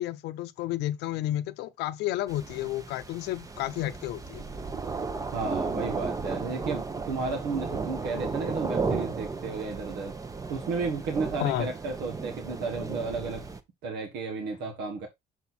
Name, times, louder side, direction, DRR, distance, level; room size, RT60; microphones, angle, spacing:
voice 1, 0.0-4.5 11.4-11.7, left 14 dB, 85° left, 0.6 m, -31 dB
sound 1, 2.3-13.6, right 4 dB, 20° right, 0.8 m, -34 dB
voice 2, 5.3-10.1 10.5-13.5 13.8-15.1, right 4 dB, 85° right, 1.3 m, -33 dB
6.6 x 4.2 x 4.1 m
cardioid pair, 110°, 17 cm